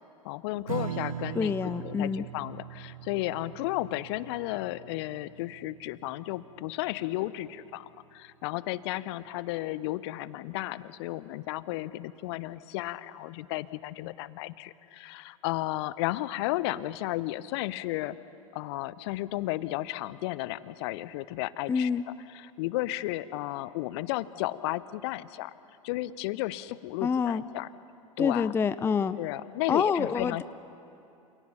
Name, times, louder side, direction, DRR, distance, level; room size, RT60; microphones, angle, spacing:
voice 1, 0.2-18.2 18.5-21.9 22.3-25.5 25.8-27.7 28.2-28.5 29.2-30.4, left 17 dB, 50° left, 17 dB, 0.8 m, -33 dB
Strum, 0.7-7.5, right 9 dB, 75° right, 0.7 m, -41 dB
voice 2, 1.4-2.2 21.7-22.0 27.0-27.4 28.2-29.2 29.7-30.4, left 6 dB, 15° left, 14 dB, 0.5 m, -27 dB
28.0 x 27.5 x 5.8 m, 2.7 s
figure-of-eight pair, 85°, 18 cm